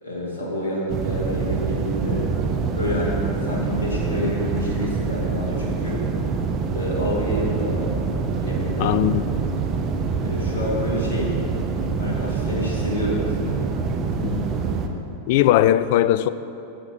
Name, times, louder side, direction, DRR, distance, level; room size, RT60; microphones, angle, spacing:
voice 1, 0.0-2.3 2.7-6.0 6.7-8.0 8.4-9.0 10.2-11.4 12.0-13.9, left 1 dB, 70° left, 2.6 m, -28 dB
sound 1, 0.9-14.9, right 5 dB, 35° right, 0.9 m, -25 dB
voice 2, 8.8-9.2 14.2-14.4 15.3-16.3, left 13 dB, 50° left, 0.3 m, -19 dB
13.0 x 8.6 x 4.4 m
figure-of-eight pair, 90°, 0 cm